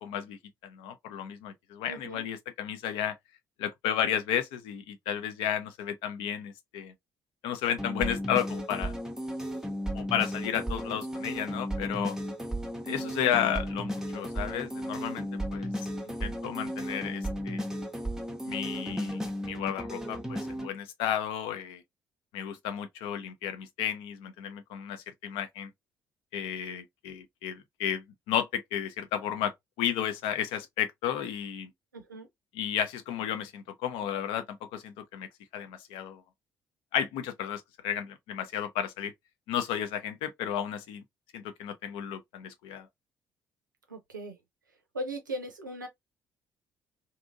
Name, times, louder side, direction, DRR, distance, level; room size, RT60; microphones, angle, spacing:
voice 1, 0.0-3.1 3.6-6.9 7.4-9.0 9.9-12.2 12.9-15.7 16.1-17.6 18.5-21.8 22.3-25.7 26.3-31.7 32.5-35.3 35.5-36.2 36.9-39.1 39.5-41.0 41.3-42.9, left 9 dB, 60° left, 0.5 m, -33 dB
voice 2, 1.9-2.2 12.9-13.1 31.9-32.3 43.9-44.4 44.9-45.9, right 1 dB, 85° right, 0.5 m, -38 dB
sound 1, 7.8-20.7, equal, 5° right, 0.6 m, -34 dB
2.6 x 2.5 x 2.4 m
figure-of-eight pair, 45°, 10 cm